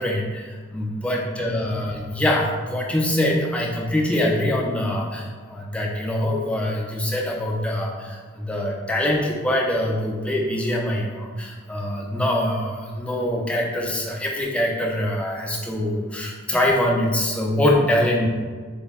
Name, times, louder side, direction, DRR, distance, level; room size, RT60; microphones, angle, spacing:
voice 1, 0.0-18.3, left 1 dB, 5° left, -2 dB, 0.3 m, -24 dB
4.1 x 2.1 x 3.5 m, 1.5 s
head